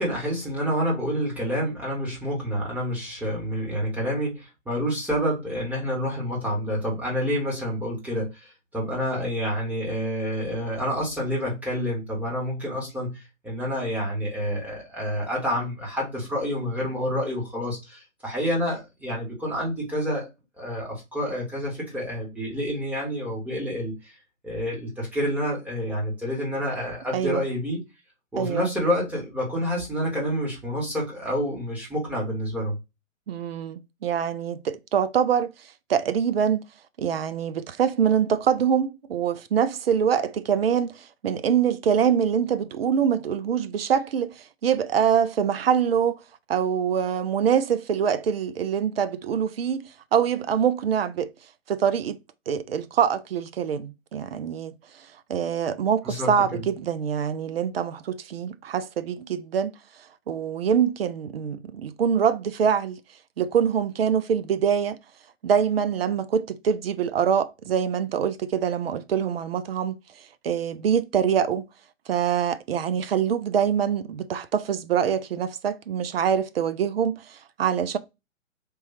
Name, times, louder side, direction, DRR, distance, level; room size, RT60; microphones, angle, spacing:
voice 1, 0.0-20.3 20.6-24.1 24.4-27.8 28.3-32.8 56.0-56.6, equal, 5° right, 1.5 m, -28 dB
voice 2, 27.1-27.4 28.4-28.7 33.3-35.5 35.9-36.6 37.0-46.2 46.5-49.8 50.1-51.3 51.7-52.2 52.5-54.7 55.3-59.7 60.3-63.0 63.4-65.0 65.4-70.0 70.4-71.7 72.1-78.0, right 8 dB, 50° right, 0.5 m, -24 dB
3.6 x 2.8 x 4.2 m
figure-of-eight pair, 130°, 40 cm